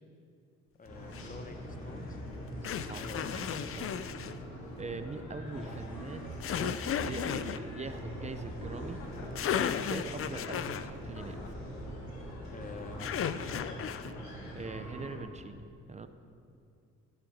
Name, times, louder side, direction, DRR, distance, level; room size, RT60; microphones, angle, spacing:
sound 1, 0.8-15.2, equal, 65° left, 3.6 m, -42 dB
voice 1, 0.8-2.2 2.7-3.3 3.7-3.8 12.5-13.9, left 4 dB, 25° left, 8 dB, 1.0 m, -47 dB
sound 2, 1.1-1.3 2.6-4.3 6.4-7.6 9.0-9.1 9.4-10.9 13.0-14.1, left 8 dB, 45° left, 0.5 m, -34 dB
voice 2, 2.6-3.1 3.3-3.9 4.8-6.3 6.6-9.0 9.6-11.4 14.5-16.1, right 3 dB, 25° right, 9 dB, 0.8 m, -42 dB
Chuckle chortle, 9.0-9.5 11.1-11.7 14.0-14.4, left 4 dB, 85° left, 1.5 m, -52 dB
14.0 x 11.0 x 4.4 m, 2.5 s
cardioid pair, 90°, 30 cm